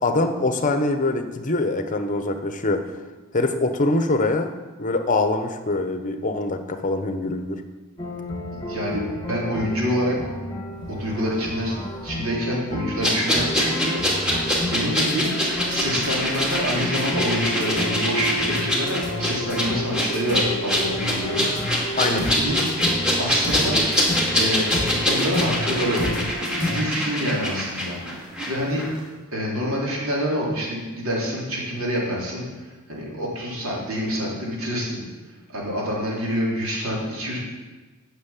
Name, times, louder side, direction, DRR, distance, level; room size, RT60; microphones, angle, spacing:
voice 1, 0.0-2.8 3.3-4.5 4.8-7.6 22.0-22.2, left 2 dB, 35° left, 8 dB, 0.9 m, -23 dB
sound 1, 8.0-26.8, left 1 dB, 20° left, 1.6 m, -31 dB
voice 2, 8.7-10.2 10.9-11.7 12.0-15.3 15.7-22.6 23.2-23.8 24.4-24.7 25.1-26.2 26.5-28.9 29.3-32.5 32.9-35.0 35.5-37.4, equal, 75° right, -4 dB, 3.6 m, -27 dB
sound 2, 13.0-28.5 28.8-28.9, equal, 5° right, 2.3 m, -24 dB
9.4 x 6.3 x 8.3 m, 1.3 s
head